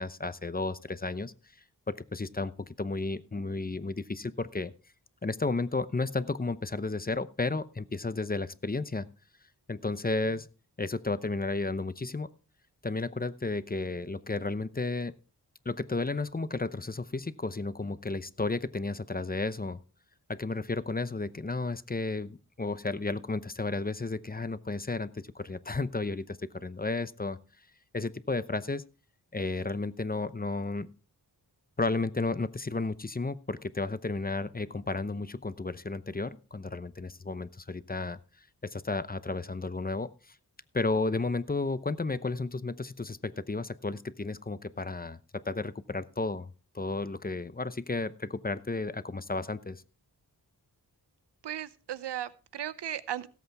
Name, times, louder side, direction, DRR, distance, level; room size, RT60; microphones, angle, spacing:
voice 1, 0.0-1.3 1.9-4.7 5.2-9.1 9.7-10.5 10.8-12.3 12.8-15.1 15.6-19.8 20.3-27.4 27.9-28.8 29.3-30.9 31.8-38.2 38.7-40.3 40.7-46.5 46.7-49.8, left 3 dB, 20° left, 14 dB, 0.8 m, -33 dB
voice 2, 51.4-53.3, right 11 dB, 90° right, 16 dB, 0.7 m, -36 dB
17.0 x 8.3 x 3.5 m, 0.35 s
cardioid pair, 55°, 40 cm